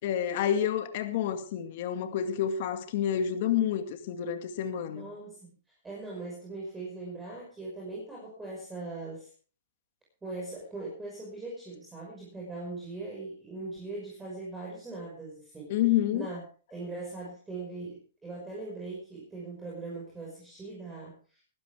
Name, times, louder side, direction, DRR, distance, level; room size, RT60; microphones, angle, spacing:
voice 1, 0.0-5.1 15.7-16.3, left 10 dB, 55° left, 2.1 m, -29 dB
voice 2, 4.9-5.4 5.8-9.3 10.2-15.7 16.1-16.4 16.7-21.4, right 3 dB, 10° right, 5.7 m, -40 dB
20.5 x 12.0 x 3.5 m
hypercardioid pair, 135°, 0 cm